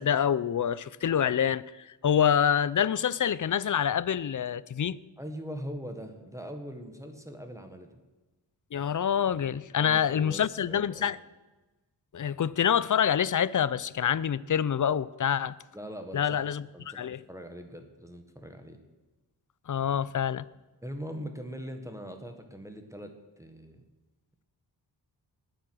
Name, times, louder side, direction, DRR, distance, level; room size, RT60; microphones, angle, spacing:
voice 1, 0.0-5.0 8.7-11.2 12.1-15.6 16.1-17.2 19.7-20.5, left 8 dB, 45° left, 0.5 m, -26 dB
voice 2, 5.2-8.0 9.8-11.1 15.7-18.8 20.8-23.8, equal, 5° right, 1.5 m, -41 dB
19.5 x 7.7 x 6.2 m
wide cardioid pair, 95°, 44 cm